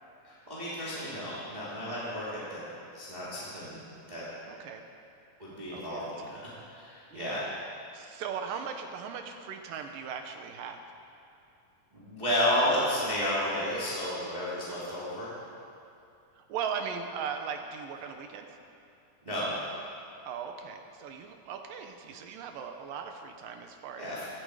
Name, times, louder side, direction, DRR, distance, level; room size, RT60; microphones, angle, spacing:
voice 1, 0.2-2.6 2.9-3.8 4.1-4.2 5.4-7.4 11.9-15.3 19.2-19.5 24.0-24.3, left 1 dB, 10° right, -9 dB, 2.9 m, -32 dB
voice 2, 4.5-4.8 5.7-6.4 7.1-7.5 7.9-10.8 16.3-18.5 20.2-24.3, right 7 dB, 75° right, 5 dB, 2.7 m, -38 dB
17.0 x 13.0 x 5.0 m, 2.6 s
omnidirectional pair, 4.1 m